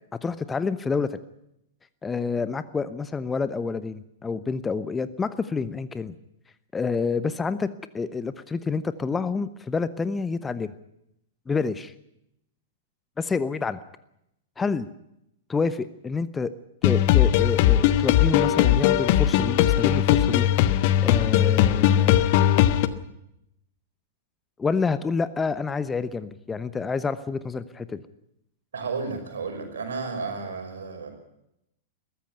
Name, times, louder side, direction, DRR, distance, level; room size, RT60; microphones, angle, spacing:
voice 1, 0.2-1.2 2.0-6.1 6.7-7.7 7.9-10.7 11.5-11.9 13.2-13.8 14.6-14.9 15.5-16.5 16.8-20.5 21.0-22.2 24.6-28.0, left 4 dB, 15° left, 14 dB, 0.9 m, -28 dB
sound 1, 16.8-22.9, left 12 dB, 45° left, 1.2 m, -19 dB
voice 2, 28.7-31.1, right 4 dB, 70° right, 5 dB, 5.6 m, -32 dB
22.0 x 14.5 x 9.4 m, 0.81 s
figure-of-eight pair, 100°, 0 cm